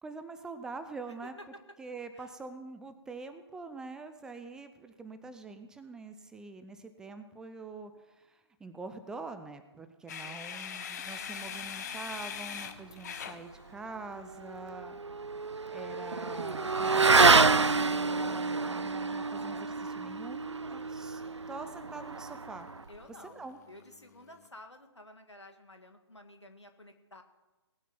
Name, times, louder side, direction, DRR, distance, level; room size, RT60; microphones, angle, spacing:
voice 1, 0.0-1.4 1.8-15.0 15.7-22.7 23.2-23.6, right 3 dB, 5° right, 9 dB, 0.5 m, -45 dB
sound 1, 10.1-14.2 16.5-24.5, left 8 dB, 40° left, 1.1 m, -46 dB
voice 2, 10.2-11.1 15.6-16.1 22.9-27.2, left 1 dB, 85° left, 6 dB, 1.9 m, -53 dB
Motorcycle / Accelerating revving vroom, 14.2-23.0, right 4 dB, 90° right, 0.4 m, -28 dB
18.5 x 9.3 x 5.9 m, 1.1 s
figure-of-eight pair, 135°, 14 cm